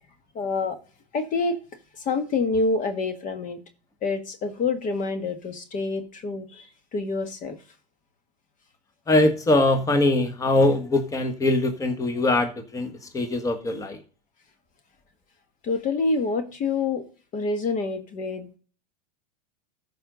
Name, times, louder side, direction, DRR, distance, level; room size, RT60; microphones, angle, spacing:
voice 1, 0.3-0.8 1.1-1.6 2.0-3.6 4.0-6.7 6.9-7.6 15.6-17.0 17.3-18.5, left 3 dB, 40° left, 8 dB, 1.6 m, -27 dB
voice 2, 9.1-14.0, left 2 dB, 15° left, 7 dB, 1.5 m, -22 dB
14.0 x 5.4 x 3.9 m, 0.38 s
hypercardioid pair, 100°, 21 cm